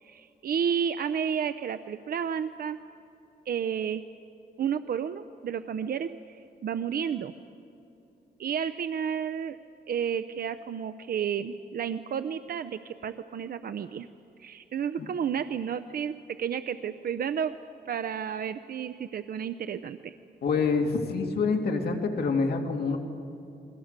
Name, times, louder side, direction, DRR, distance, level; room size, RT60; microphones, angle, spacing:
voice 1, 0.0-2.8 3.5-4.0 4.6-7.3 8.4-9.6 9.9-14.1 14.4-17.5 17.9-20.1, right 8 dB, 60° right, 11 dB, 0.6 m, -31 dB
voice 2, 20.4-23.0, left 4 dB, 65° left, 3 dB, 2.6 m, -26 dB
30.0 x 22.5 x 6.7 m, 2.8 s
wide cardioid pair, 150°, 17 cm